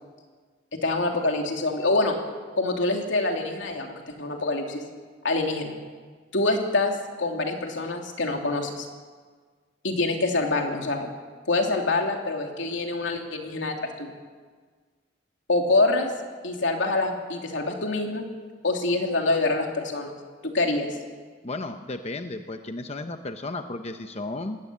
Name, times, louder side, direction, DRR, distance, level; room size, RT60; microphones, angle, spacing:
voice 1, 0.8-2.2 2.6-4.8 5.2-5.7 6.3-8.9 9.8-11.1 11.5-14.1 15.5-16.1 16.4-18.3 18.6-20.2 20.4-20.9, left 2 dB, 80° left, 2 dB, 2.9 m, -25 dB
voice 2, 21.4-24.6, left 2 dB, 35° left, 7 dB, 0.9 m, -34 dB
20.5 x 16.0 x 8.6 m, 1.5 s
head